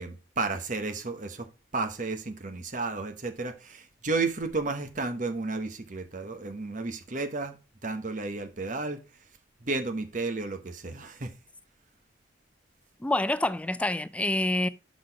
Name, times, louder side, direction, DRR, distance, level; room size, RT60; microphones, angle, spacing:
voice 1, 0.0-1.5 1.7-7.6 7.8-9.0 9.6-11.3, right 3 dB, 40° right, 1.0 m, -32 dB
voice 2, 13.0-14.7, left 1 dB, 5° left, 0.4 m, -27 dB
6.2 x 5.9 x 4.6 m
head